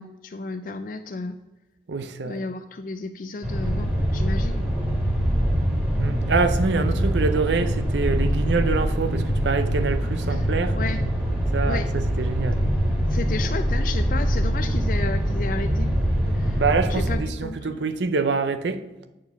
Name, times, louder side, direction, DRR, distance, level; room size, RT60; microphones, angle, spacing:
voice 1, 0.0-1.4 2.3-4.7 10.3-10.4 10.7-11.0 11.7-11.9 13.1-15.9 16.4-16.6 16.9-17.8, left 3 dB, 45° left, 0.4 m, -32 dB
voice 2, 1.9-2.4 6.0-10.8 11.5-12.6 16.6-18.8, right 4 dB, 80° right, 0.6 m, -25 dB
sound 1, 3.4-17.1, equal, 10° right, 2.5 m, -23 dB
8.6 x 4.6 x 5.8 m
head